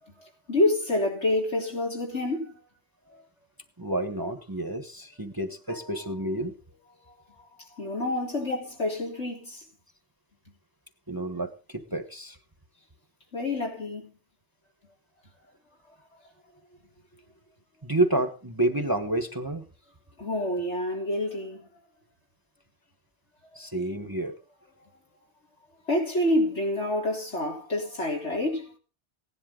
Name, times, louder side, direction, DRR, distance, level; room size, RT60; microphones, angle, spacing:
voice 1, 0.0-2.6 7.6-9.6 13.3-14.1 20.2-21.7 25.9-28.7, left 1 dB, 75° left, 4.0 m, -28 dB
voice 2, 3.8-6.5 11.1-12.4 17.8-19.7 23.5-24.4, right 1 dB, 20° right, 1.2 m, -29 dB
17.0 x 11.0 x 3.7 m
omnidirectional pair, 1.2 m